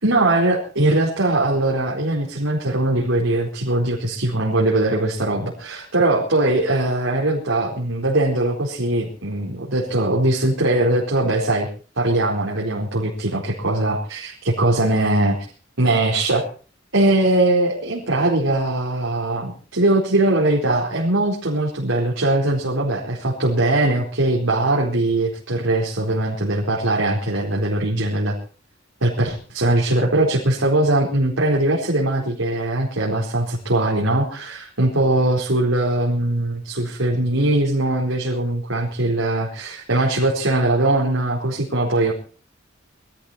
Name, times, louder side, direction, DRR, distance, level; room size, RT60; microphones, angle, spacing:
voice 1, 0.0-11.7 11.9-15.4 15.8-16.5 16.9-28.4 29.0-42.1, right 2 dB, 75° right, -3 dB, 4.3 m, -21 dB
22.0 x 13.5 x 4.3 m, 0.38 s
head